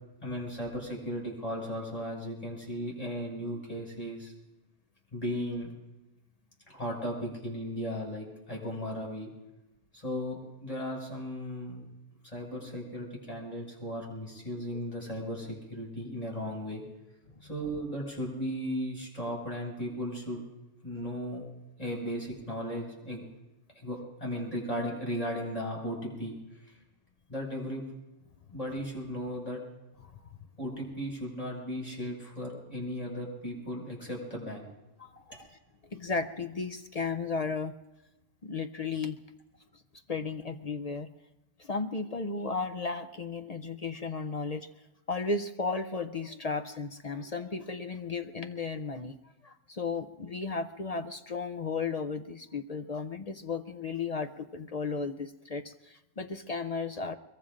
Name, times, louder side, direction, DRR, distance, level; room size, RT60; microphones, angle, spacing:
voice 1, 0.2-4.3 5.1-5.7 6.7-9.3 9.9-11.9 12.2-16.8 17.4-20.4 20.8-21.4 21.8-23.2 23.7-26.4 27.3-27.8 28.5-29.6 30.6-34.7 35.3-35.4, equal, 30° left, -3 dB, 5.9 m, -36 dB
voice 2, 35.9-37.7 38.4-39.2 40.1-41.1 41.6-44.7 45.1-49.2 49.4-57.1, left 4 dB, 45° left, 7 dB, 0.5 m, -34 dB
23.5 x 22.0 x 2.6 m, 0.99 s
omnidirectional pair, 1.3 m